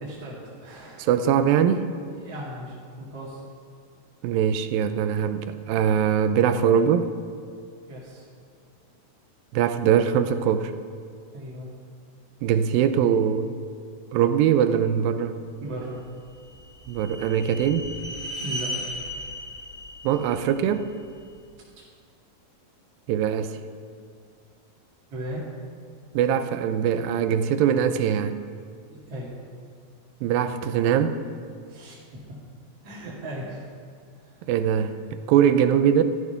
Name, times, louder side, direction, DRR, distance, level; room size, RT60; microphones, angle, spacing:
voice 1, 0.0-1.1 2.1-3.4 7.9-8.3 11.3-11.7 15.6-16.0 18.4-18.7 25.1-25.4 28.9-29.4 31.7-32.2 32.8-33.6 34.2-34.4, right 1 dB, 45° right, -7 dB, 3.0 m, -37 dB
voice 2, 1.0-2.0 4.2-7.1 9.5-10.7 12.4-13.5 14.1-15.4 16.9-17.9 20.0-20.9 23.1-23.6 26.1-28.4 30.2-31.2 34.5-36.0, right 8 dB, 85° right, 10 dB, 2.4 m, -22 dB
sound 1, 16.1-21.3, equal, 5° left, 0.5 m, -36 dB
14.0 x 13.0 x 5.8 m, 2.3 s
omnidirectional pair, 4.2 m